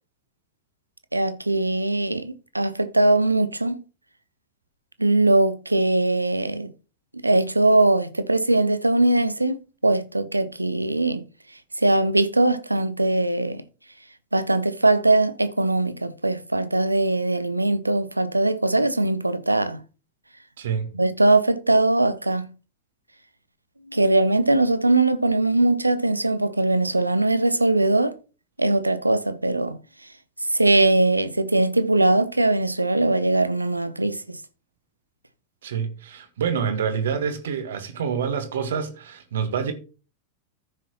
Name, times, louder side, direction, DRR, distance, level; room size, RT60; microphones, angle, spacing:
voice 1, 1.1-3.8 5.0-6.7 7.2-11.2 11.8-13.6 14.3-19.8 20.9-22.5 23.9-28.1 28.6-29.8 30.5-34.4, right 2 dB, 85° right, 0.7 m, -21 dB
voice 2, 20.6-20.9 35.6-39.7, right 7 dB, 60° right, 1.5 m, -27 dB
14.0 x 6.1 x 3.0 m
figure-of-eight pair, 90°, 0 cm